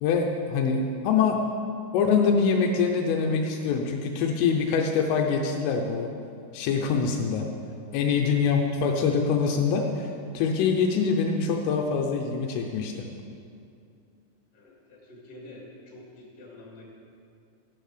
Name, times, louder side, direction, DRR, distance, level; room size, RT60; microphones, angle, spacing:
voice 1, 0.0-1.4 1.9-6.1 6.5-7.5 7.9-10.1 10.3-13.1, left 5 dB, 80° left, 2 dB, 3.3 m, -24 dB
voice 2, 14.5-16.8, left 1 dB, 25° left, -4 dB, 2.6 m, -47 dB
14.5 x 9.4 x 6.8 m, 2.4 s
omnidirectional pair, 6.0 m